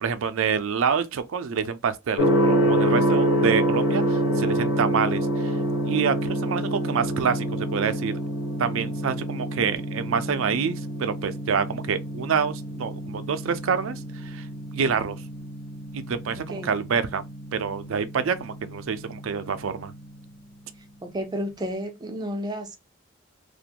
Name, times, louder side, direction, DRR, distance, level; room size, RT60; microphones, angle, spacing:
voice 1, 0.0-5.5 5.9-8.1 8.6-14.4 14.7-15.2 15.9-17.2 17.5-19.9, right 6 dB, 70° right, 0.4 m, -27 dB
Gong, 2.2-20.0, right 1 dB, 75° left, 1.2 m, -27 dB
voice 2, 21.0-22.8, equal, 20° right, 0.5 m, -31 dB
2.5 x 2.2 x 2.8 m
head